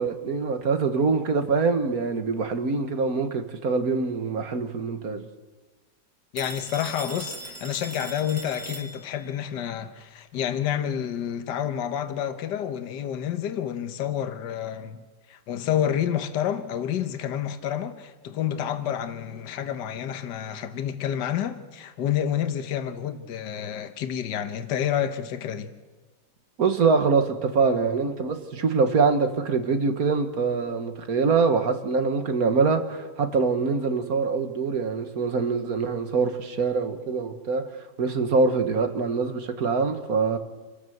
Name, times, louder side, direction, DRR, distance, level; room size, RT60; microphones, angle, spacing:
voice 1, 0.0-5.3 26.6-37.7 38.0-40.4, right 4 dB, 55° right, 1.8 m, -24 dB
voice 2, 6.3-15.0 15.3-25.7, left 10 dB, 75° left, 1.7 m, -29 dB
Telephone, 6.4-9.4, right 1 dB, 10° right, 1.5 m, -39 dB
27.0 x 13.5 x 7.9 m
omnidirectional pair, 1.9 m